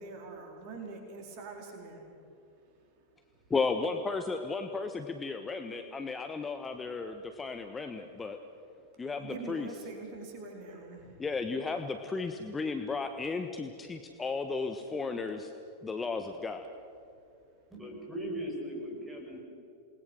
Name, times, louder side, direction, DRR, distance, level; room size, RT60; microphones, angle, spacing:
voice 1, 0.0-2.0 9.2-11.2, right 3 dB, 45° right, 2 dB, 4.4 m, -44 dB
voice 2, 3.5-8.4 9.0-9.7 11.2-15.5 15.8-16.7, left 4 dB, 15° left, 6 dB, 1.2 m, -34 dB
voice 3, 17.7-19.4, equal, 5° right, -1 dB, 6.7 m, -38 dB
28.0 x 20.5 x 6.4 m, 2.6 s
figure-of-eight pair, 90°, 0 cm